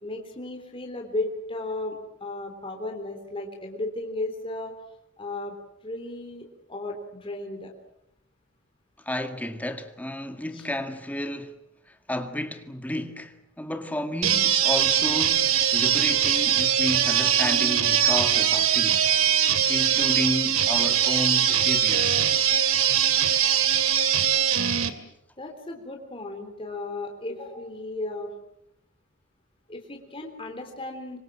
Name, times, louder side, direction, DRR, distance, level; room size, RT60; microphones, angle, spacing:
voice 1, 0.0-4.7 5.2-5.5 5.8-7.7 10.5-10.7 25.4-28.3 29.7-31.2, left 2 dB, 25° left, 3.6 m, -35 dB
voice 2, 9.1-11.6 12.1-19.1 19.7-22.2, left 1 dB, 10° left, 2.1 m, -31 dB
sound 1, 14.2-24.9, right 9 dB, 90° right, 2.4 m, -22 dB
27.0 x 24.5 x 7.5 m
head